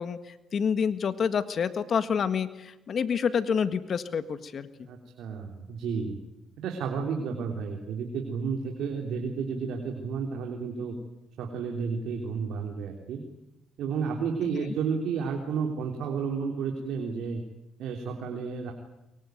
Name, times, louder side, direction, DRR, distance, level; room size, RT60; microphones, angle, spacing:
voice 1, 0.0-4.9, left 6 dB, 55° left, 12 dB, 1.6 m, -28 dB
voice 2, 4.9-6.2 6.6-11.0 11.4-13.2 13.8-17.4 17.8-18.7, right 5 dB, 80° right, 2 dB, 3.4 m, -32 dB
23.5 x 23.0 x 9.3 m, 0.92 s
cardioid pair, 90°, 0 cm